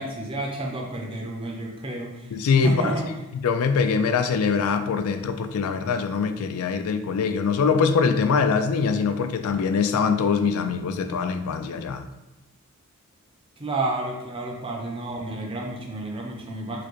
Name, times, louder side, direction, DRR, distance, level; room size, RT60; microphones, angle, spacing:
voice 1, 0.0-2.3 2.6-3.1 13.6-16.9, right 2 dB, 25° right, 0 dB, 0.5 m, -30 dB
voice 2, 2.3-3.0 3.4-12.1, left 5 dB, 75° left, 9 dB, 0.3 m, -23 dB
4.6 x 2.1 x 3.0 m, 0.96 s
head